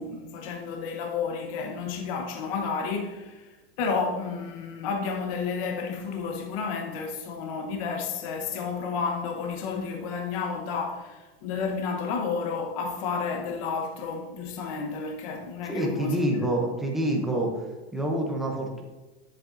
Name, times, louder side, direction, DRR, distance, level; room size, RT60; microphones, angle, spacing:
voice 1, 0.0-16.5, left 5 dB, 35° left, 0.8 m, -31 dB
voice 2, 15.7-17.5 17.9-18.8, right 1 dB, ahead, 0.4 m, -27 dB
9.9 x 7.6 x 2.5 m
supercardioid pair, 175°, 31 cm